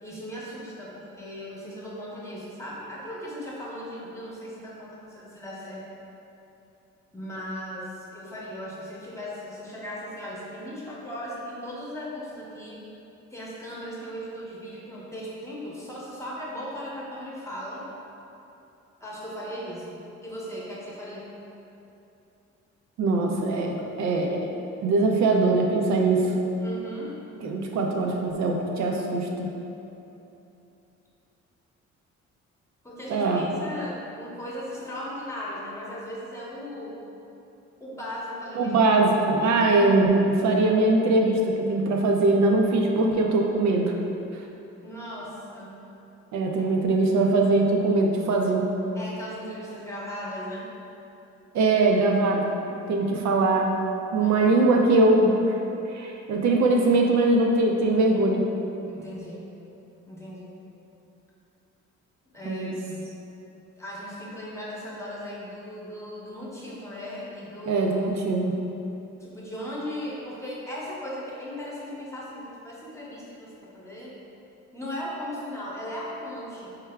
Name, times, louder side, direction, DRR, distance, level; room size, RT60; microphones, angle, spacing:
voice 1, 0.0-5.9 7.1-12.8 13.3-17.8 19.0-21.3 26.6-27.1 32.8-37.0 37.8-38.8 39.2-39.7 44.8-45.8 46.6-46.7 48.9-50.7 54.2-54.6 58.9-59.4 60.1-60.5 62.3-63.1 63.8-67.9 69.2-74.1 74.7-76.7, equal, 10° left, -6 dB, 0.8 m, -37 dB
voice 2, 23.0-24.5 24.8-26.3 27.4-29.5 33.1-33.4 38.6-43.9 46.3-48.7 51.5-52.5 52.9-53.7 54.1-55.6 55.9-58.5 62.5-62.8 67.7-68.6, right 2 dB, 65° right, 1 dB, 0.5 m, -22 dB
4.6 x 3.3 x 2.2 m, 2.9 s
cardioid pair, 90°, 30 cm